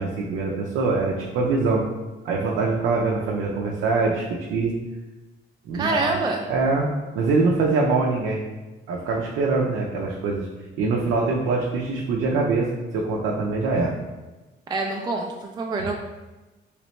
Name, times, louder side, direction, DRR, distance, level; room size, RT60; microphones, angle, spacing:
voice 1, 0.0-1.8 2.2-4.7 5.7-6.2 6.5-6.9 7.1-8.4 8.9-10.5 10.8-14.0, right 3 dB, 85° right, -3 dB, 0.5 m, -23 dB
voice 2, 5.7-6.5 14.7-16.0, right 2 dB, 20° right, 1 dB, 0.4 m, -26 dB
3.2 x 2.9 x 3.1 m, 1.1 s
cardioid pair, 90°, 20 cm